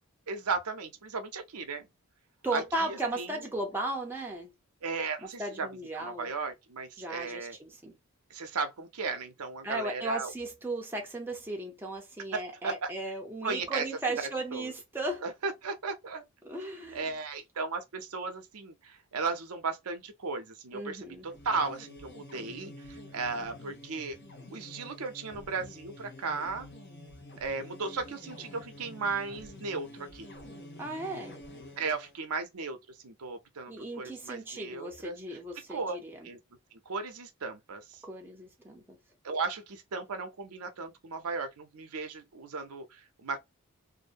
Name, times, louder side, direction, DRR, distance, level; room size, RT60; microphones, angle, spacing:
voice 1, 0.3-1.9 2.5-3.5 4.8-5.7 5.9-7.6 8.3-10.3 12.3-12.9 13.4-13.9 14.2-14.7 15.2-16.2 16.9-24.2 24.5-26.7 27.4-30.3 31.8-35.2 35.7-36.0 36.2-36.4 36.9-38.0 39.2-43.4, right 4 dB, 80° right, 0.6 m, -36 dB
voice 2, 2.4-4.5 5.2-6.3 7.0-8.0 9.6-15.2 16.4-17.0 20.7-21.3 30.8-31.4 33.7-36.3 38.0-39.0, right 2 dB, 10° right, 0.6 m, -36 dB
sound 1, 21.1-32.2, left 1 dB, 50° left, 0.7 m, -48 dB
2.5 x 2.1 x 2.5 m
head